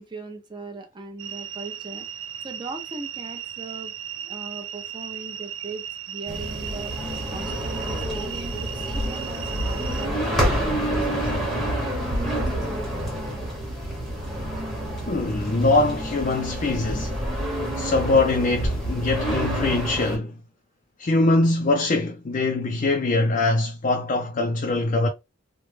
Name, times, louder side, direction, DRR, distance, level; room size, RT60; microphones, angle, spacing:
voice 1, 0.0-2.1 2.4-6.9 7.3-11.7 12.1-13.0, right 3 dB, 25° right, 0.6 m, -38 dB
sound 1, 1.2-10.1, right 9 dB, 85° right, 0.4 m, -36 dB
sound 2, 6.3-20.2, equal, ahead, 0.9 m, -28 dB
voice 2, 15.1-17.2 17.8-20.4 21.0-25.1, left 2 dB, 40° left, 0.4 m, -22 dB
3.2 x 2.1 x 3.1 m
head